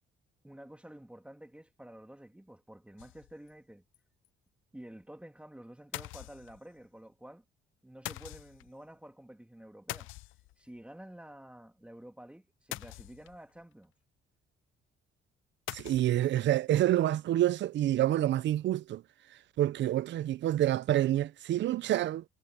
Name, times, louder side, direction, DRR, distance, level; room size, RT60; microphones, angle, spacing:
voice 1, 0.4-3.8 4.7-7.4 7.8-10.1 10.6-13.9, right 1 dB, 5° right, 2.3 m, -50 dB
sound 1, 3.0-3.5 3.9-4.0 4.3-4.4 5.9-6.8 8.1-8.7 9.9-10.8 12.7-13.5 15.7-16.2, left 17 dB, 85° left, 0.4 m, -43 dB
voice 2, 15.7-19.0 19.6-22.2, right 13 dB, 65° right, 0.6 m, -27 dB
cardioid pair, 90°, 20 cm